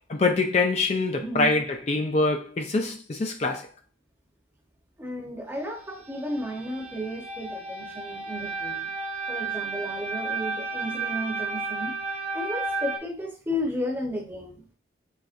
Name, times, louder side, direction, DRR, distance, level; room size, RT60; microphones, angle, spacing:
voice 1, 0.1-3.7, left 3 dB, 35° left, 0.4 m, -24 dB
voice 2, 1.2-1.6 5.0-8.9 9.3-12.0 12.3-14.6, equal, 10° right, 0.9 m, -33 dB
sound 1, 5.5-13.0, right 4 dB, 40° right, 1.1 m, -33 dB
6.3 x 3.3 x 2.5 m
head